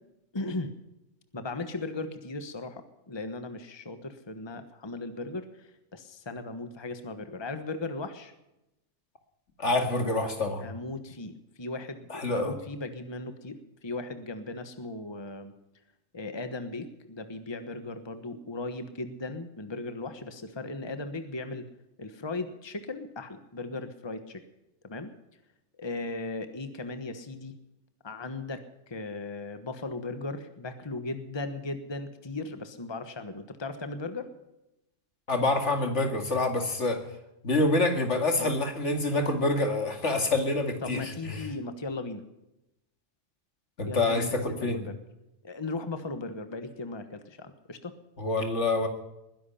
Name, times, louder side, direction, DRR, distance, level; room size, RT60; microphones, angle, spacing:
voice 1, 0.3-0.7 1.3-8.3 10.6-15.5 16.1-21.7 22.0-24.4 24.8-25.1 25.8-27.5 28.0-34.3 38.4-38.5 40.8-42.2 43.8-45.0 45.4-47.9, left 2 dB, 20° left, 9 dB, 1.3 m, -37 dB
voice 2, 9.6-10.6 12.1-12.5 35.3-37.0 37.4-41.4 43.8-44.8 48.2-48.9, left 2 dB, 65° left, 5 dB, 2.5 m, -27 dB
21.0 x 11.0 x 5.7 m, 0.90 s
omnidirectional pair, 1.3 m